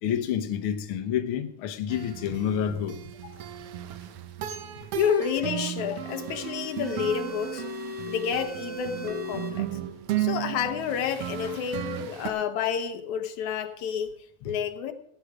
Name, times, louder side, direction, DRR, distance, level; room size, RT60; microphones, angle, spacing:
voice 1, 0.0-3.0 14.4-14.6, left 9 dB, 60° left, 1.5 m, -29 dB
sound 1, 1.9-12.3, right 13 dB, 70° right, 1.5 m, -35 dB
voice 2, 5.0-7.6 8.1-9.7 10.2-14.1 14.5-14.9, left 8 dB, 75° left, 2.3 m, -29 dB
sound 2, 6.1-9.5, left 1 dB, 15° right, 1.4 m, -38 dB
16.5 x 9.6 x 4.9 m
omnidirectional pair, 3.4 m